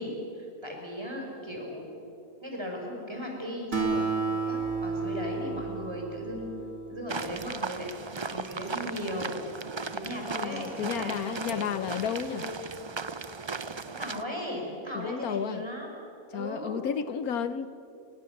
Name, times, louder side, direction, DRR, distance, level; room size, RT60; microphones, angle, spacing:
voice 1, 0.0-1.9 2.4-6.5 6.9-7.9 8.2-9.4 9.8-11.7 12.3-12.5 13.7-15.9 16.3-16.8, equal, 15° right, 0 dB, 5.8 m, -37 dB
Acoustic guitar, 3.7-7.4, right 4 dB, 60° right, 3.6 m, -32 dB
sound 1, 7.1-14.2, right 4 dB, 40° right, 0.4 m, -37 dB
voice 2, 10.3-12.5 14.9-15.7 16.3-17.7, left 8 dB, 80° left, 12 dB, 1.4 m, -32 dB
28.5 x 24.0 x 7.2 m, 2.7 s
omnidirectional pair, 1.5 m